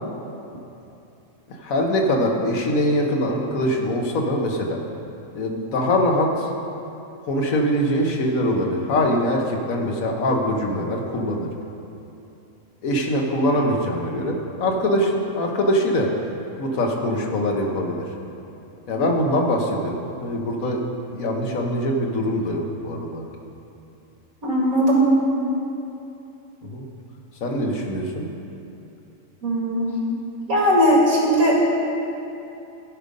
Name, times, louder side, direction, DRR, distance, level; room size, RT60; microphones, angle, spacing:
voice 1, 1.5-4.8 5.3-6.5 7.2-11.5 12.8-16.3 16.6-18.1 18.9-20.9 21.1-23.3 26.6-26.8 27.4-28.3, equal, 80° left, 1 dB, 1.5 m, -23 dB
voice 2, 24.4-25.1 29.4-30.0 30.5-31.6, equal, 80° right, -4 dB, 2.5 m, -18 dB
14.5 x 5.2 x 5.3 m, 2.8 s
omnidirectional pair, 1.4 m